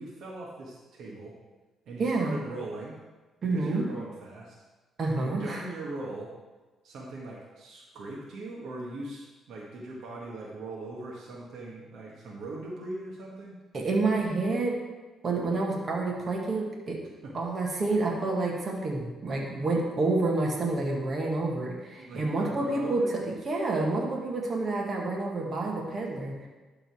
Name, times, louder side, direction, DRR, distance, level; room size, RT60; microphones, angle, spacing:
voice 1, 0.0-1.3 1.8-3.0 3.4-4.5 5.2-6.3 6.8-13.5 17.2-17.3 22.0-23.1, right 2 dB, 75° right, -3 dB, 1.5 m, -40 dB
voice 2, 2.0-2.4 3.4-3.9 5.0-5.6 13.7-14.8 15.2-17.0 17.3-26.3, right 3 dB, 45° right, -1 dB, 1.8 m, -28 dB
11.5 x 3.9 x 4.8 m, 1.2 s
cardioid pair, 90°, 0 cm